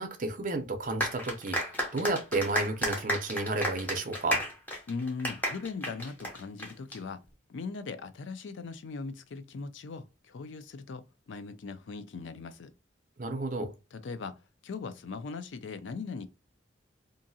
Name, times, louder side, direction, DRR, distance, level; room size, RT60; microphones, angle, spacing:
voice 1, 0.0-4.4 13.2-13.7, right 2 dB, 45° right, 0.6 m, -32 dB
sound 1, 1.0-7.0, equal, 10° left, 0.8 m, -33 dB
voice 2, 4.9-7.2 7.5-12.7 13.9-14.3 14.6-16.3, left 4 dB, 75° left, 0.4 m, -39 dB
2.7 x 2.5 x 2.7 m
head